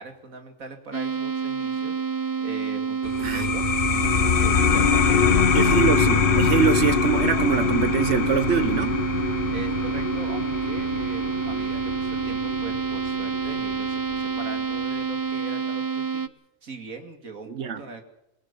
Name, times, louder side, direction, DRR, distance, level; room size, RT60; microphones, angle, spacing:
voice 1, 0.0-3.7 3.9-5.4 9.5-16.2 16.6-18.0, right 4 dB, 80° right, 2.8 m, -40 dB
sound 1, 0.9-16.3, right 6 dB, 25° right, 0.5 m, -28 dB
sound 2, 3.0-14.2, left 7 dB, 45° left, 1.0 m, -24 dB
voice 2, 5.5-9.0 17.5-17.8, right 7 dB, 55° right, 1.2 m, -24 dB
22.0 x 18.5 x 7.0 m
omnidirectional pair, 1.4 m